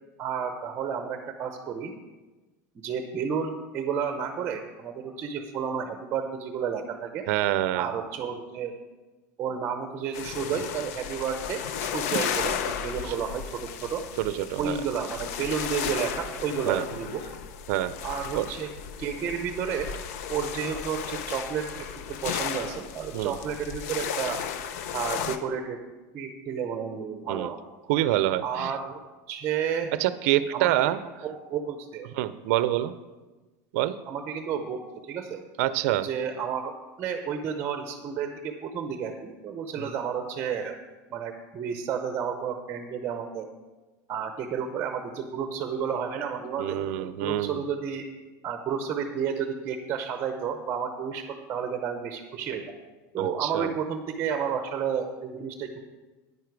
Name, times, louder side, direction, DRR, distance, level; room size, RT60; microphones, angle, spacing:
voice 1, 0.2-1.9 2.7-7.2 7.7-8.7 9.4-14.0 14.6-17.2 18.0-18.7 19.0-19.9 20.3-21.9 22.2-24.4 24.9-25.8 26.1-27.6 28.4-29.0 29.3-29.9 30.5-30.7 31.2-32.1 34.0-35.4 36.0-40.8 41.1-43.5 44.1-48.1 48.4-52.6 53.1-55.8, right 7 dB, 25° right, 6 dB, 0.7 m, -31 dB
voice 2, 7.3-7.9 13.1-13.2 14.2-14.8 16.7-16.8 17.7-17.9 18.4-18.5 23.1-23.3 27.3-27.5 27.9-28.7 30.0-31.0 32.1-32.9 33.7-33.9 35.6-36.1 39.8-39.9 46.6-47.6 53.2-53.7, right 14 dB, 60° right, 14 dB, 0.5 m, -26 dB
sound 1, 10.1-25.4, left 8 dB, 65° left, 0.8 m, -34 dB
10.0 x 9.7 x 4.7 m, 1.2 s
supercardioid pair, 170°, 9 cm